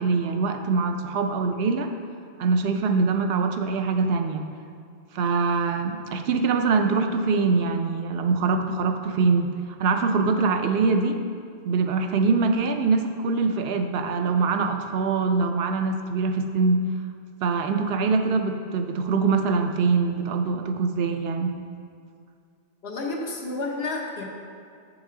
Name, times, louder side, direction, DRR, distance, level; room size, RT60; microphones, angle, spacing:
voice 1, 0.0-1.9 2.4-4.4 5.1-9.5 9.8-11.2 11.6-16.8 17.4-21.5, right 4 dB, 75° right, 6 dB, 0.8 m, -23 dB
voice 2, 22.8-24.3, left 3 dB, 80° left, 0 dB, 1.2 m, -30 dB
7.3 x 6.0 x 3.7 m, 2.3 s
omnidirectional pair, 1.0 m